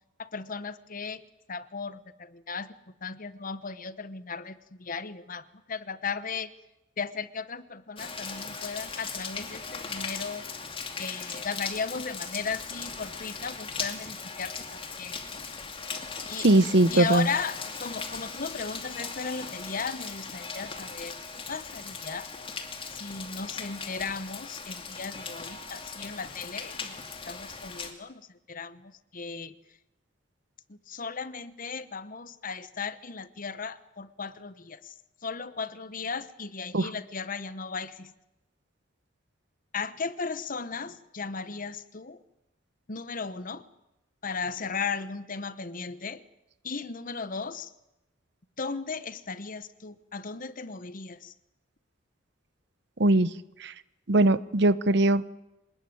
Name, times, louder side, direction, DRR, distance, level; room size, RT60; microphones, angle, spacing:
voice 1, 0.2-1.2 1.5-2.8 3.0-6.5 7.0-10.4 11.0-14.5 15.0-15.4 16.2-16.5 16.9-21.1 21.5-22.3 22.9-27.0 27.3-28.2 28.5-29.5 30.7-34.8 35.2-38.1 39.7-42.2 42.9-43.6 44.2-46.2 46.6-47.7 48.6-51.3, left 5 dB, 45° left, 14 dB, 1.1 m, -36 dB
Rain, 8.0-27.9, left 5 dB, 30° left, 2.6 m, -39 dB
voice 2, 16.4-17.3 36.7-36.9 53.0-53.3 53.6-53.7 54.1-55.3, right 2 dB, 60° right, 16 dB, 0.9 m, -21 dB
26.0 x 20.0 x 9.4 m, 0.94 s
head